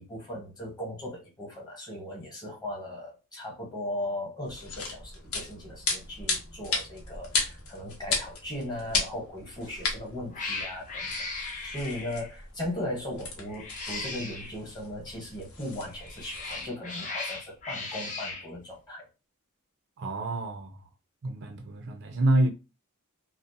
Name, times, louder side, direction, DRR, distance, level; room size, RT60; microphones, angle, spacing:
voice 1, 0.0-19.1, left 1 dB, 20° left, 1.0 m, -38 dB
sound 1, 4.5-16.7, left 4 dB, 65° left, 0.7 m, -36 dB
Cat, 9.6-9.9 10.3-12.4 13.5-14.6 15.9-18.5, left 3 dB, 35° left, 0.6 m, -37 dB
voice 2, 20.0-20.8 21.2-22.5, right 2 dB, 55° right, 0.4 m, -27 dB
2.5 x 2.0 x 2.6 m
head